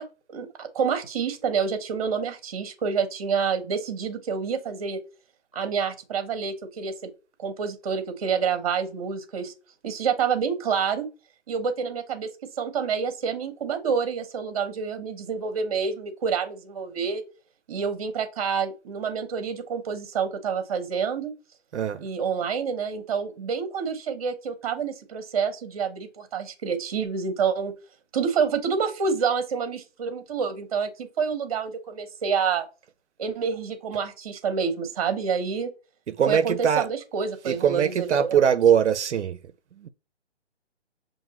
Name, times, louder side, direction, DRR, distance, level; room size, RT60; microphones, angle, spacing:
voice 1, 0.0-5.0 5.5-6.9 7.4-9.5 9.8-11.1 11.5-17.2 17.7-21.3 22.0-27.7 28.1-32.7 33.2-35.7 36.3-38.4, right 6 dB, 30° right, 0.8 m, -28 dB
voice 2, 21.7-22.1 36.1-36.9 37.4-39.4 39.8-39.9, right 8 dB, 80° right, 0.5 m, -22 dB
5.9 x 2.6 x 2.8 m
hypercardioid pair, 155°, 35 cm